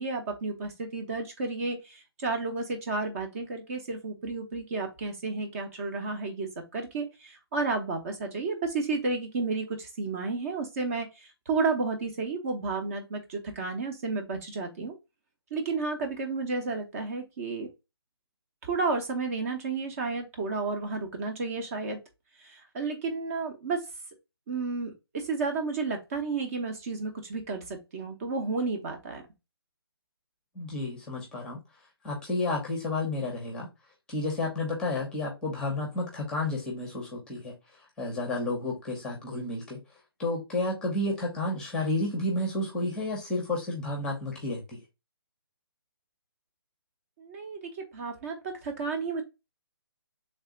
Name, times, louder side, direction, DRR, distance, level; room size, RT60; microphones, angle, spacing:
voice 1, 0.0-11.1 11.5-14.9 15.5-17.7 18.6-22.0 22.4-23.8 24.5-29.2 47.2-49.2, right 3 dB, 35° right, 4 dB, 0.8 m, -32 dB
voice 2, 30.5-31.6 32.0-33.7 34.1-37.5 38.0-39.8 40.2-44.8, left 2 dB, 5° left, -1 dB, 0.8 m, -31 dB
3.3 x 2.6 x 3.7 m, 0.24 s
hypercardioid pair, 155°, 13 cm